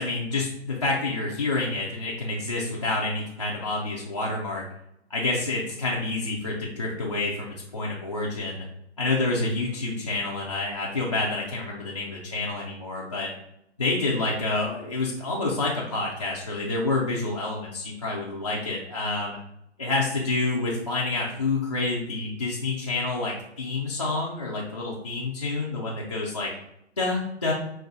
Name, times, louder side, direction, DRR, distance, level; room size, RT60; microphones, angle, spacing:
voice 1, 0.0-4.6 5.1-8.7 9.0-13.3 13.8-19.4 19.8-26.5 27.0-27.5, left 2 dB, 30° left, -6 dB, 0.4 m, -28 dB
5.4 x 2.5 x 3.6 m, 0.81 s
hypercardioid pair, 160°, 35 cm